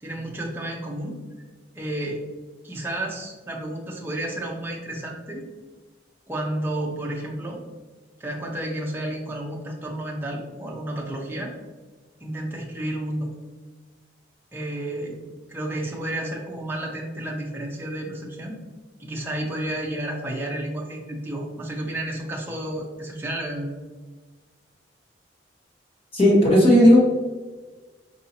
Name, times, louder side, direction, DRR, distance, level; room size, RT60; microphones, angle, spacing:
voice 1, 0.0-1.2 1.7-2.2 2.6-5.4 6.3-7.6 8.2-11.5 12.2-13.3 14.5-15.2 15.5-18.6 19.0-23.7, right 1 dB, 10° right, -2 dB, 0.6 m, -31 dB
voice 2, 26.1-27.0, equal, 30° left, -4 dB, 1.2 m, -14 dB
4.6 x 2.7 x 2.8 m, 1.3 s
head